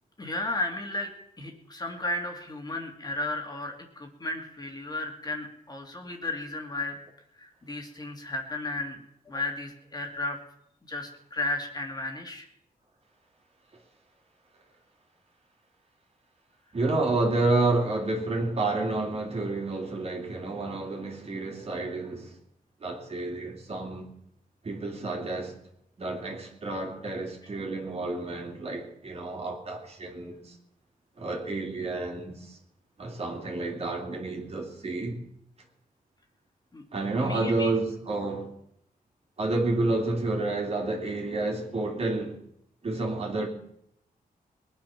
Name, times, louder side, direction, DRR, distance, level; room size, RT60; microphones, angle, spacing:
voice 1, 0.2-1.1 1.4-7.0 7.4-9.0 9.3-10.4 10.9-12.5 36.7-36.8 37.2-37.7, left 2 dB, 25° left, 2.4 m, -34 dB
voice 2, 16.7-22.4 22.8-24.1 24.6-25.6 26.0-30.6 31.2-32.6 33.0-35.2 36.9-38.5 39.4-42.4 42.8-43.5, right 2 dB, 40° right, 3.1 m, -30 dB
21.5 x 9.3 x 5.9 m
wide cardioid pair, 140°, 15 cm